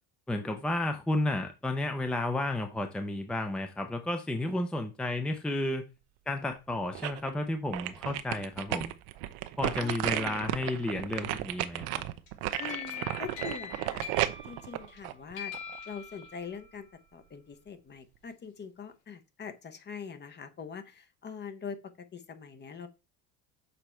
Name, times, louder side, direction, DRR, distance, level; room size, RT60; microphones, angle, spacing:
voice 1, 0.3-5.8 6.3-8.9 9.6-12.0, left 2 dB, 5° left, 0.6 m, -32 dB
sound 1, 6.5-7.3 7.7-15.8 16.2-16.3, right 15 dB, 80° right, 0.8 m, -34 dB
voice 2, 9.8-10.5 12.6-14.2 14.5-15.6 15.8-22.9, left 6 dB, 30° left, 0.9 m, -43 dB
sound 2, 12.3-15.0 15.3-16.6, left 7 dB, 85° left, 4.7 m, -42 dB
6.9 x 4.0 x 4.4 m
cardioid pair, 120°, 37 cm